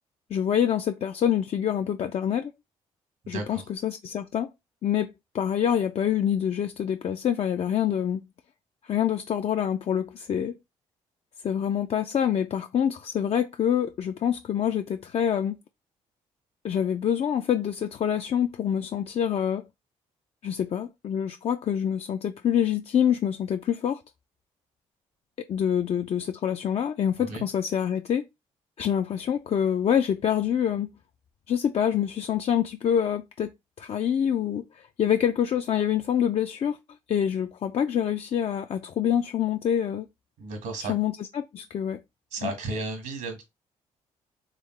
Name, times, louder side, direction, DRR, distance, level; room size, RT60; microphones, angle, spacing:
voice 1, 0.3-2.5 3.3-4.5 4.8-8.2 8.8-10.6 11.4-15.6 16.6-19.6 20.4-24.0 25.5-28.2 28.8-30.9 31.5-33.5 33.8-36.8 37.1-40.1 40.9-42.0 42.4-42.5, left 9 dB, 45° left, 0.4 m, -26 dB
voice 2, 3.2-3.7 27.2-27.4 40.4-40.9 42.3-43.4, right 2 dB, 75° right, 1.7 m, -33 dB
3.7 x 3.4 x 3.2 m
hypercardioid pair, 50°, 14 cm